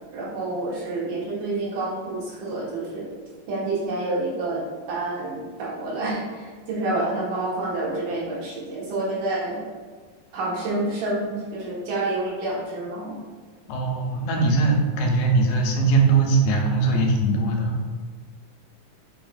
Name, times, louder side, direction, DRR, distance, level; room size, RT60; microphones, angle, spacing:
voice 1, 0.1-3.1 3.5-9.6 10.3-13.2, right 2 dB, 75° right, -5 dB, 2.5 m, -28 dB
voice 2, 13.7-17.8, right 3 dB, 90° left, 1 dB, 2.4 m, -21 dB
5.6 x 2.9 x 2.4 m, 1.5 s
omnidirectional pair, 4.0 m